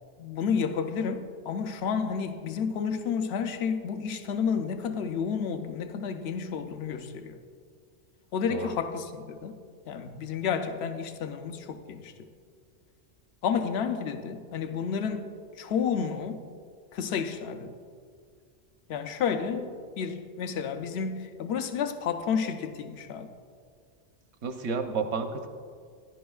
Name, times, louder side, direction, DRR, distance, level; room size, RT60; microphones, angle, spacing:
voice 1, 0.2-7.4 8.3-9.5 9.9-12.1 13.4-15.3 15.6-16.4 16.9-17.7 18.9-19.7 20.0-23.3, left 6 dB, 70° left, 0.9 m, -31 dB
voice 2, 24.4-25.5, right 4 dB, 75° right, 1.0 m, -31 dB
15.0 x 10.5 x 2.3 m
omnidirectional pair, 1.2 m